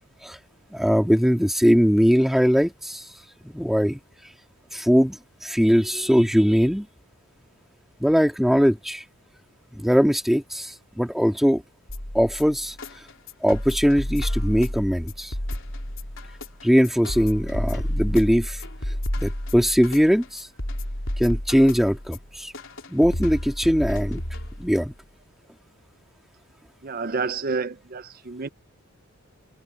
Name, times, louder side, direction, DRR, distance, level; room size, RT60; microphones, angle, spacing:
voice 1, 0.7-3.0 3.4-4.0 4.7-6.9 8.0-9.0 9.8-11.6 12.1-12.7 13.4-15.3 16.6-18.6 19.2-20.5 21.2-22.5 22.9-24.2 24.6-24.9, equal, ahead, 3.6 m, -20 dB
sound 1, 11.9-24.9, left 1 dB, 60° left, 4.1 m, -31 dB
voice 2, 26.8-28.5, right 4 dB, 40° right, 0.6 m, -29 dB
open air
head